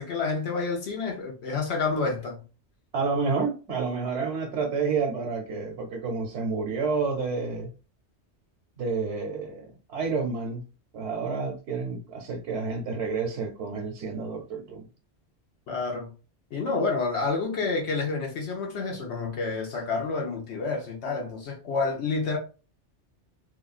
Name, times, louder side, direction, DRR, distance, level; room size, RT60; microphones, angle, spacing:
voice 1, 0.0-2.4 15.7-16.1 16.5-22.4, left 4 dB, 70° left, 1.1 m, -29 dB
voice 2, 2.9-7.7 8.8-10.6 10.9-14.9, right 4 dB, 75° right, 1.0 m, -29 dB
3.4 x 2.3 x 2.4 m
omnidirectional pair, 1.2 m